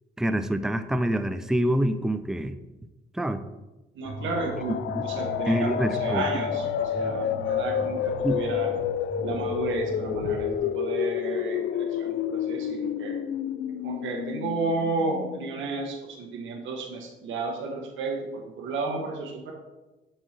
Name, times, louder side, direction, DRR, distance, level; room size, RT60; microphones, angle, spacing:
voice 1, 0.2-2.6 3.1-3.4 4.9-5.1 5.5-6.2 8.2-8.4, right 1 dB, 5° right, 10 dB, 0.4 m, -26 dB
voice 2, 3.9-4.8 5.0-8.7 9.2-13.2 13.8-19.5, right 3 dB, 75° right, 1 dB, 1.1 m, -32 dB
sound 1, 4.0-10.6, equal, 60° right, 1.4 m, -39 dB
sound 2, 4.1-15.8, left 9 dB, 60° left, 0.4 m, -30 dB
7.1 x 4.5 x 3.3 m, 1.1 s
cardioid pair, 90°, 20 cm